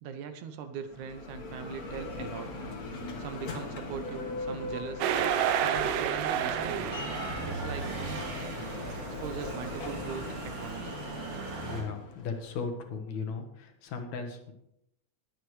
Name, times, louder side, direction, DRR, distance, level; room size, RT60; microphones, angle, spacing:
voice 1, 0.0-2.5 3.2-5.1 5.5-6.9 7.5-8.3 9.0-10.9, right 7 dB, 75° right, 8 dB, 2.1 m, -40 dB
Bell, 0.8-12.6, left 2 dB, 45° left, 1.1 m, -40 dB
sound 1, 5.0-7.6, right 9 dB, 90° right, 2.4 m, -29 dB
sound 2, 6.5-11.8, right 3 dB, 50° right, 3.3 m, -39 dB
voice 2, 11.6-14.5, left 5 dB, 65° left, 5 dB, 2.4 m, -37 dB
20.0 x 8.0 x 3.2 m, 0.79 s
omnidirectional pair, 3.6 m